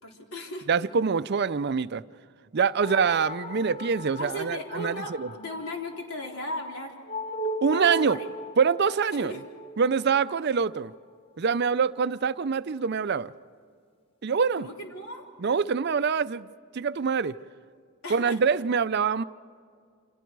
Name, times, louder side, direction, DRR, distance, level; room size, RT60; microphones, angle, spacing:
voice 1, 0.0-0.7 4.2-6.9 7.7-8.3 9.2-9.4 14.6-15.2 18.0-18.4, left 1 dB, 80° left, 0 dB, 4.1 m, -36 dB
voice 2, 0.7-2.0 2.5-5.3 7.6-8.2 8.6-9.3 9.8-10.9 11.4-13.3 14.2-14.7 15.4-17.4 18.1-19.2, right 5 dB, 50° right, 15 dB, 0.5 m, -25 dB
sound 1, 2.8-11.6, right 1 dB, 25° left, 1.5 m, -38 dB
29.5 x 27.0 x 4.7 m, 2.2 s
head